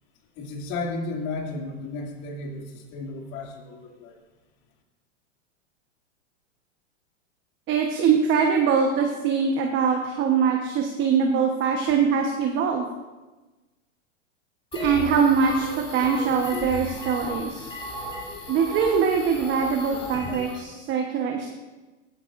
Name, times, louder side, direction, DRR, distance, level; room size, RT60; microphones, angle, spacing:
voice 1, 0.4-4.2, left 3 dB, 45° left, 0 dB, 2.5 m, -33 dB
voice 2, 7.7-12.8 14.7-17.7 18.5-21.5, right 6 dB, 30° right, 3 dB, 1.1 m, -23 dB
sound 1, 14.7-20.6, left 2 dB, 15° left, 2.6 m, -35 dB
15.0 x 10.0 x 2.6 m, 1.2 s
hypercardioid pair, 125°, 37 cm